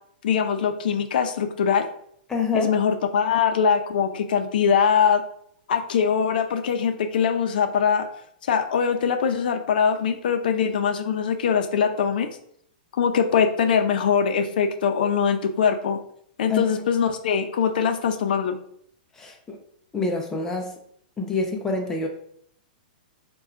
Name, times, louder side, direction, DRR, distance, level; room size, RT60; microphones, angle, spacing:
voice 1, 0.2-1.9 2.5-5.2 5.7-8.0 8.5-12.3 12.9-16.0 16.4-18.6, left 7 dB, 70° left, 6 dB, 0.5 m, -22 dB
voice 2, 2.3-2.7 16.5-16.6 19.2-19.6 19.9-20.7 21.2-22.1, left 4 dB, 10° left, 2 dB, 0.4 m, -26 dB
3.5 x 2.3 x 4.3 m, 0.67 s
hypercardioid pair, 160°, 5 cm